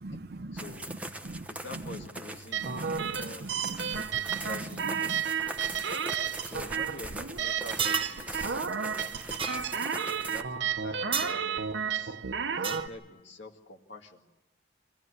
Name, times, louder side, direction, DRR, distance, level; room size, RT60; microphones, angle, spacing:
voice 1, 0.0-1.5 1.7-2.0 2.6-4.0 4.3-5.2, right 2 dB, 55° right, 0.7 m, -41 dB
voice 2, 0.5-0.9 1.5-2.8 3.2-5.0 5.4-5.9 6.4-9.7 10.3-14.2, left 1 dB, 80° left, 2.1 m, -47 dB
sound 1, 0.6-10.4, right 1 dB, 10° right, 0.9 m, -41 dB
sound 2, 2.5-12.9, right 7 dB, 80° right, 0.9 m, -32 dB
sound 3, 7.8-8.2 9.4-9.6 11.1-11.4 12.6-12.9, right 6 dB, 30° right, 1.1 m, -31 dB
24.0 x 15.5 x 9.8 m
head